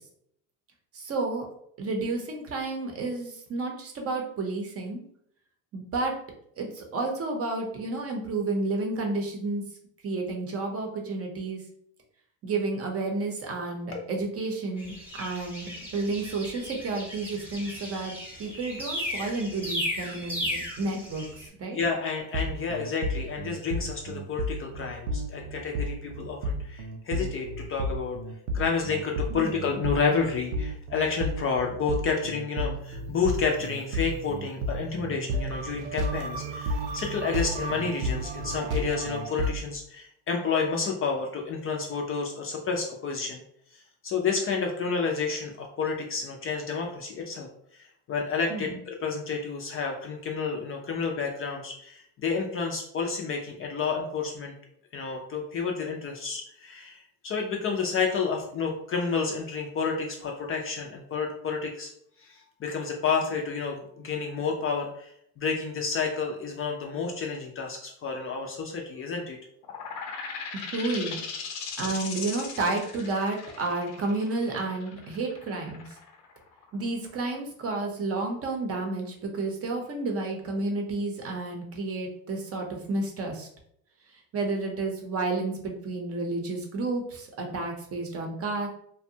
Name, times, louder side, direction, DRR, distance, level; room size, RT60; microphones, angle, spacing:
voice 1, 0.9-1.5 1.8-5.0 5.7-6.2 6.6-9.6 10.0-11.6 12.4-18.1 18.4-21.8 29.3-29.6 48.5-48.7 70.7-71.2 71.8-75.9 76.7-83.5 84.3-88.7, right 3 dB, 35° right, 2 dB, 0.6 m, -31 dB
sound 1, 14.8-21.5, equal, 5° right, 0.9 m, -36 dB
voice 2, 21.7-28.2 28.5-43.4 43.7-47.5 47.7-54.5 54.9-61.9 62.2-69.4, left 5 dB, 35° left, 1 dB, 0.4 m, -30 dB
sound 2, 22.3-39.5, equal, 85° right, 0.5 m, -32 dB
sound 3, 69.6-77.0, left 5 dB, 75° left, 0.7 m, -38 dB
2.5 x 2.2 x 2.7 m, 0.69 s
supercardioid pair, 110°, 41 cm